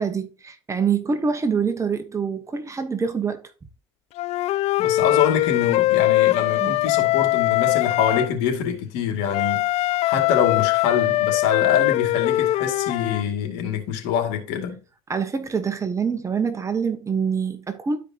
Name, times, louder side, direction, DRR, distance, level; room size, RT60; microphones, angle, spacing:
voice 1, 0.0-3.5 6.6-6.7 15.1-18.0, right 6 dB, 20° right, 1.2 m, -25 dB
Wind instrument woodwind instrument, 4.2-8.3 9.3-13.2, left 17 dB, 50° left, 0.4 m, -21 dB
voice 2, 4.8-14.8, left 8 dB, 75° left, 2.4 m, -25 dB
11.5 x 5.0 x 2.9 m
supercardioid pair, 100°, 14 cm